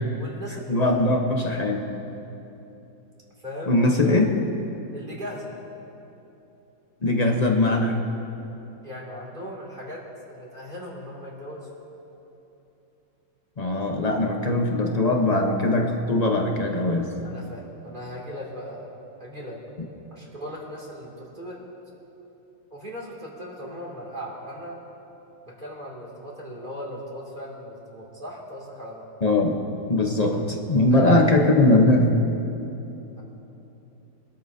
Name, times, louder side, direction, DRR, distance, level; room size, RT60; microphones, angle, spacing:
voice 1, 0.2-1.0 3.4-3.7 4.0-4.1 4.9-5.5 8.8-11.7 17.2-18.9 19.2-19.6 20.1-21.6 22.7-24.8 25.4-29.1 30.9-31.3, equal, 25° right, -4 dB, 2.6 m, -38 dB
voice 2, 0.7-1.9 3.7-4.3 7.0-8.0 13.6-17.1 29.2-29.6 29.9-32.1, left 2 dB, 35° left, 1 dB, 0.6 m, -21 dB
24.5 x 13.0 x 2.7 m, 3.0 s
omnidirectional pair, 2.1 m